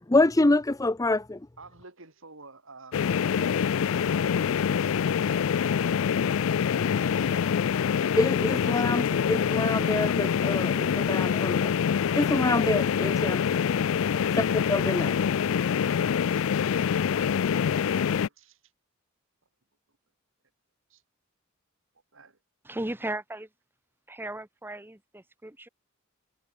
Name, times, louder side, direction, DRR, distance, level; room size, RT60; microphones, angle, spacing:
voice 1, 0.0-1.4 8.2-11.7 12.2-13.6 14.7-15.2, left 2 dB, 15° left, 0.6 m, -26 dB
voice 2, 1.6-6.0 6.7-7.7 8.5-8.6 14.2-14.8 15.8-17.2 17.7-18.6 20.9-21.0 22.1-22.4, right 3 dB, 65° right, 3.7 m, -51 dB
sound 1, 2.9-18.3, left 7 dB, 70° left, 0.4 m, -25 dB
voice 3, 22.6-23.5 24.1-25.7, right 1 dB, 10° right, 1.3 m, -36 dB
head